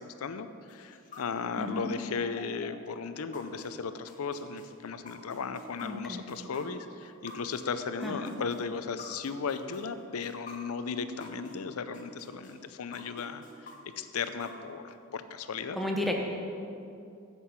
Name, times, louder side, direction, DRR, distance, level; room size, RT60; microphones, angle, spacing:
voice 1, 0.0-15.8, left 5 dB, 90° left, 11 dB, 0.5 m, -36 dB
sound 1, 0.7-11.6 11.9-14.9, left 2 dB, 35° left, 1.3 m, -48 dB
voice 2, 1.6-1.9 5.8-6.2 8.0-8.3 15.8-16.2, left 1 dB, ahead, 0 dB, 0.9 m, -32 dB
9.9 x 7.7 x 5.8 m, 2.6 s
head